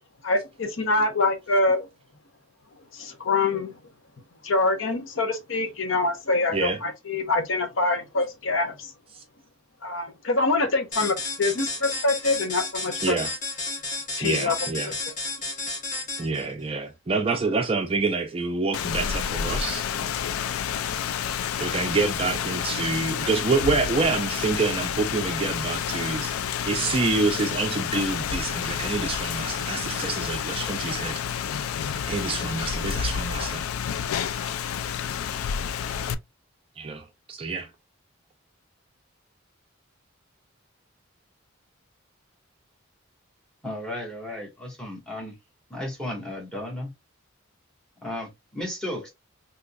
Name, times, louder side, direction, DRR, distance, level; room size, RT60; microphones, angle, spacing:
voice 1, 0.2-1.9 2.9-3.8 4.4-8.9 9.8-13.2 14.1-14.7, left 3 dB, 65° left, 0.7 m, -25 dB
sound 1, 10.9-16.5, left 3 dB, 40° left, 1.1 m, -32 dB
voice 2, 14.2-14.9 16.2-19.8 21.6-26.3 26.6-31.2 32.1-33.7 36.8-37.7, right 3 dB, 25° right, 0.4 m, -27 dB
Rain, 18.7-36.1, left 8 dB, 90° left, 0.3 m, -29 dB
voice 3, 43.6-45.3 45.7-46.9 48.0-49.1, left 1 dB, 5° left, 1.4 m, -34 dB
3.8 x 2.9 x 2.3 m
head